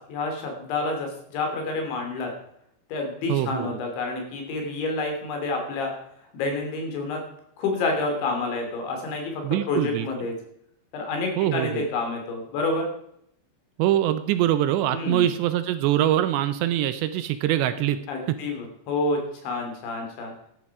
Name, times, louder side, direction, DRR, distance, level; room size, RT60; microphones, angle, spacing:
voice 1, 0.1-2.3 2.9-5.9 6.3-7.2 7.6-10.3 10.9-12.9 14.9-15.3 18.1-20.3, left 3 dB, 75° left, 2 dB, 5.4 m, -28 dB
voice 2, 3.3-3.8 9.4-10.1 11.4-11.9 13.8-18.0 18.3-18.4, right 12 dB, 80° right, 12 dB, 2.8 m, -23 dB
13.5 x 11.0 x 4.8 m, 0.72 s
omnidirectional pair, 5.3 m